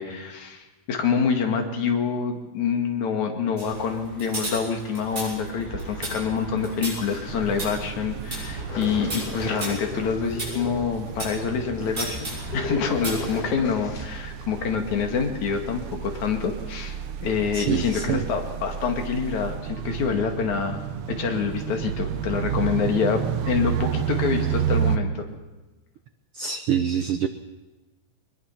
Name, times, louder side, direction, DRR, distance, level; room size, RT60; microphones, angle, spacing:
voice 1, 0.0-25.3, left 6 dB, 70° left, 4 dB, 3.5 m, -26 dB
sound 1, 3.6-11.4 12.0-13.4, right 2 dB, 30° right, 7.8 m, -35 dB
sound 2, 7.3-25.0, right 9 dB, 65° right, 1.4 m, -31 dB
sound 3, 8.7-14.1, left 3 dB, 90° left, 4.4 m, -36 dB
voice 2, 17.5-18.2 26.3-27.3, right 8 dB, 90° right, 9 dB, 1.2 m, -25 dB
22.0 x 21.0 x 5.9 m, 1.2 s
omnidirectional pair, 3.5 m